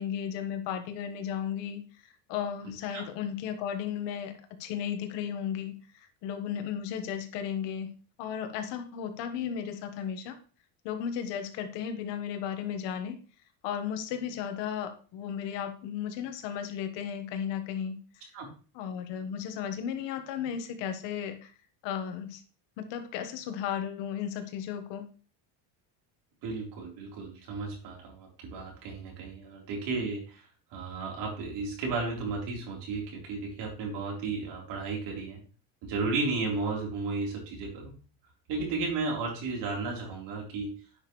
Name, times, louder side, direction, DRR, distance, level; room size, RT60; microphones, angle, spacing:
voice 1, 0.0-4.3 4.6-7.9 8.2-10.4 10.8-13.2 13.6-18.3 18.7-21.5 21.8-22.4 22.8-25.1, left 8 dB, 75° left, 8 dB, 1.5 m, -35 dB
voice 2, 26.4-35.4 35.8-37.9 38.5-40.7, right 3 dB, 70° right, -1 dB, 4.0 m, -34 dB
9.8 x 6.2 x 3.2 m, 0.38 s
cardioid pair, 130°, 43 cm